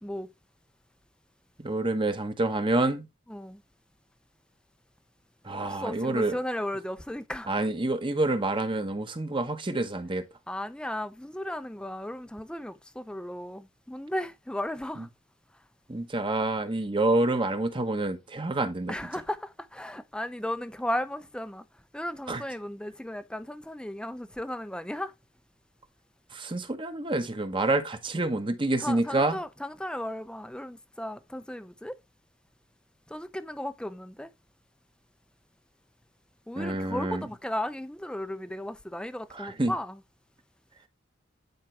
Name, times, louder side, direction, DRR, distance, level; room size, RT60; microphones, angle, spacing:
voice 1, 1.6-3.0 5.4-6.4 7.5-10.2 15.9-18.9 22.3-22.4 26.3-29.4 36.6-37.2 39.4-39.7, right 2 dB, 25° right, 1.1 m, -27 dB
voice 2, 3.3-3.6 5.6-7.5 10.5-15.1 18.9-21.7 21.9-25.1 28.8-32.0 33.1-34.3 36.5-40.0, left 1 dB, 5° left, 0.6 m, -35 dB
10.5 x 4.9 x 3.3 m
head